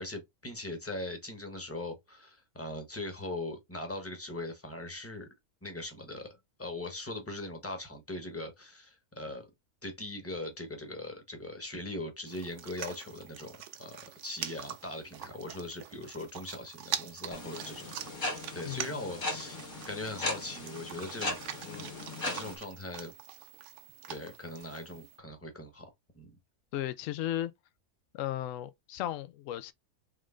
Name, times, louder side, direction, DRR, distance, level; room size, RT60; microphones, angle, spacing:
voice 1, 0.0-5.3 5.6-6.3 6.6-9.4 9.8-19.6 19.9-21.9 22.3-23.1 24.1-25.9 26.1-26.3, left 2 dB, 10° left, 0.9 m, -40 dB
sound 1, 12.3-25.2, right 9 dB, 65° right, 0.8 m, -44 dB
sound 2, 17.3-22.5, left 2 dB, 40° left, 1.2 m, -38 dB
voice 2, 18.6-19.0 26.7-27.5 28.1-29.7, left 13 dB, 70° left, 0.9 m, -35 dB
3.7 x 3.2 x 3.7 m
omnidirectional pair, 1.6 m